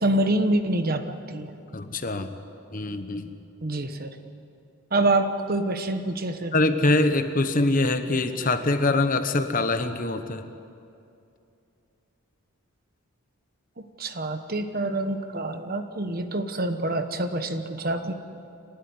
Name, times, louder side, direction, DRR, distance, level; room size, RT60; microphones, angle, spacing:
voice 1, 0.0-1.5 3.6-4.1 4.9-6.5 14.0-18.1, right 2 dB, 40° right, 8 dB, 1.2 m, -26 dB
voice 2, 1.7-2.3 2.7-3.3 6.5-10.4, left 2 dB, 40° left, 9 dB, 1.1 m, -24 dB
29.5 x 13.0 x 9.7 m, 2.6 s
head